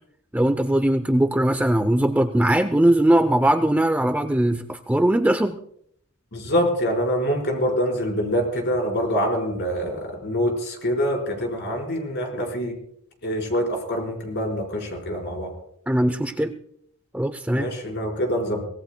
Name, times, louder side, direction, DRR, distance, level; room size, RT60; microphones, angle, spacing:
voice 1, 0.3-5.6 15.9-16.5 17.1-17.7, right 1 dB, 5° right, 9 dB, 0.5 m, -20 dB
voice 2, 6.3-12.7 13.2-15.5 17.5-18.6, equal, 50° left, 1 dB, 4.5 m, -25 dB
24.5 x 18.0 x 2.2 m, 0.69 s
head